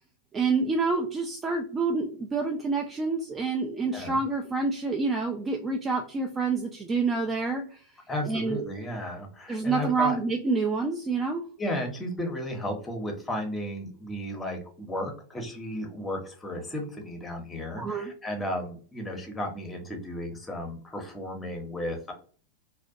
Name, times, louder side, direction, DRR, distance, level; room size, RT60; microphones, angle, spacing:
voice 1, 0.3-7.8 8.3-8.6 9.5-11.4 17.8-18.1, right 4 dB, 20° right, 3 dB, 0.3 m, -28 dB
voice 2, 8.1-10.2 11.6-22.1, equal, 10° left, 3 dB, 0.7 m, -34 dB
2.4 x 2.1 x 2.4 m, 0.41 s
figure-of-eight pair, 90°, 0 cm